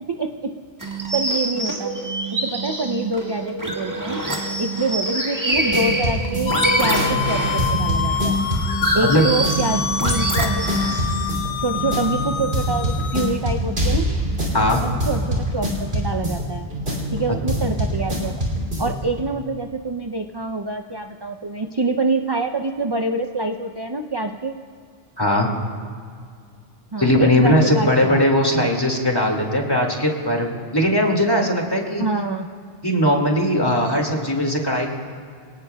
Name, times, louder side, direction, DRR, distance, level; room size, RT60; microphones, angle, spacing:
voice 1, 0.1-0.5 1.1-1.9 2.3-4.2 4.6-8.4 8.9-10.8 11.6-14.1 14.8-16.7 17.1-18.3 18.8-24.6 26.9-28.7 32.0-32.5, right 3 dB, 45° right, 5 dB, 0.3 m, -26 dB
sound 1, 0.8-11.3, right 1 dB, 15° right, 1.6 m, -25 dB
sound 2, 5.5-19.2, equal, 60° right, 3.0 m, -25 dB
sound 3, 6.5-13.3, left 7 dB, 75° left, 1.0 m, -28 dB
voice 2, 25.2-25.5 27.0-32.0 32.8-34.9, left 1 dB, 20° left, 0 dB, 2.0 m, -19 dB
24.5 x 18.0 x 2.3 m, 2.1 s
omnidirectional pair, 1.2 m